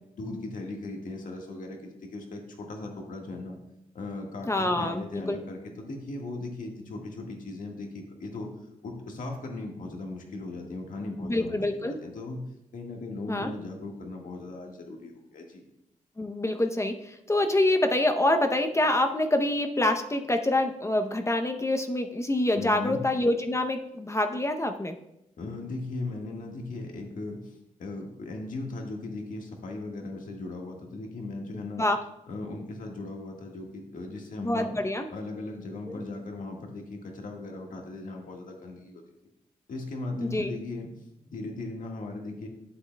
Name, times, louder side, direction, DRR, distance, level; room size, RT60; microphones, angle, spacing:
voice 1, 0.2-3.6 3.9-8.5 8.8-12.4 12.7-15.6 22.5-23.0 25.4-31.8 32.3-34.7 35.1-39.0 39.7-40.9 41.2-42.5, left 2 dB, 80° left, 1 dB, 1.6 m, -38 dB
voice 2, 4.5-5.4 11.2-12.0 13.3-13.5 16.2-25.0 31.5-32.0 34.4-35.1 35.9-36.0 40.2-40.5, left 1 dB, 20° left, 6 dB, 0.7 m, -26 dB
11.0 x 8.0 x 2.2 m, 0.83 s
cardioid pair, 75°, 14 cm